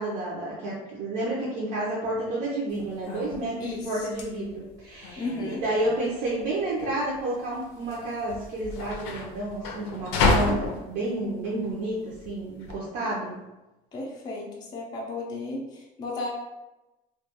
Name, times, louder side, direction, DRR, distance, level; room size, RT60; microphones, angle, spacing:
voice 1, 0.0-13.4, right 1 dB, 65° right, -6 dB, 0.6 m, -30 dB
sound 1, 2.7-12.8, left 3 dB, 85° left, 0.5 m, -31 dB
voice 2, 3.6-4.1 5.2-5.6 13.9-16.3, left 2 dB, 20° left, -2 dB, 0.4 m, -34 dB
2.3 x 2.2 x 2.8 m, 1.0 s
cardioid pair, 155°, 19 cm